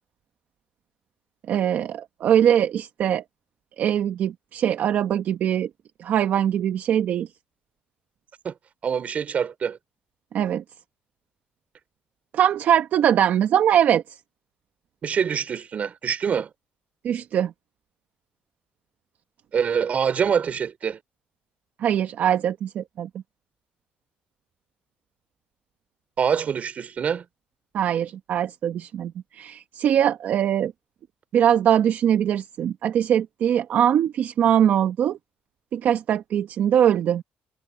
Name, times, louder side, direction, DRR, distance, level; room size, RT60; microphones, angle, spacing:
voice 1, 1.5-3.2 3.8-5.7 6.0-7.3 10.3-10.6 12.3-14.0 17.0-17.5 21.8-23.1 27.7-30.7 31.3-35.2 35.7-37.2, right 9 dB, 60° right, 1.5 m, -22 dB
voice 2, 8.8-9.8 15.0-16.5 19.5-21.0 26.2-27.2, right 7 dB, 45° right, 4.4 m, -25 dB
cardioid pair, 115°, 3 cm